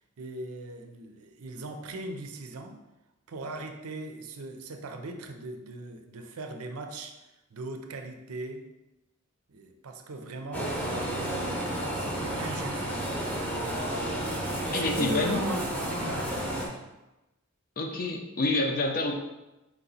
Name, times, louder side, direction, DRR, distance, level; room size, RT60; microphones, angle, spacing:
voice 1, 0.2-2.8 3.3-7.2 7.5-8.7 9.5-12.8 14.6-16.6, right 2 dB, 70° right, 6 dB, 0.5 m, -39 dB
sound 1, 10.5-16.7, right 1 dB, 5° left, 0.8 m, -31 dB
voice 2, 14.7-15.4 17.8-19.1, left 2 dB, 40° left, 2 dB, 0.6 m, -27 dB
4.5 x 2.9 x 3.9 m, 1.0 s
head